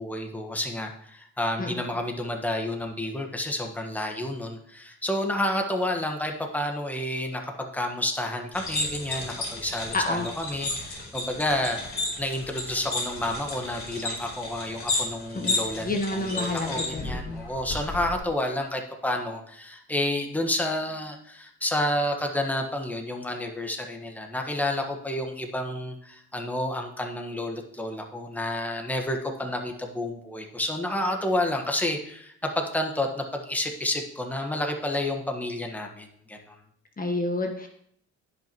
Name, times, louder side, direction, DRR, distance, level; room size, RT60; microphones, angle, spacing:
voice 1, 0.0-36.5, left 1 dB, 5° left, 2 dB, 1.4 m, -30 dB
sound 1, 8.5-18.2, left 2 dB, 45° left, 3.3 m, -33 dB
voice 2, 9.9-10.3 15.3-17.4 37.0-37.7, left 2 dB, 30° left, 3 dB, 1.2 m, -29 dB
16.0 x 5.8 x 3.1 m, 0.66 s
cardioid pair, 90°, 30 cm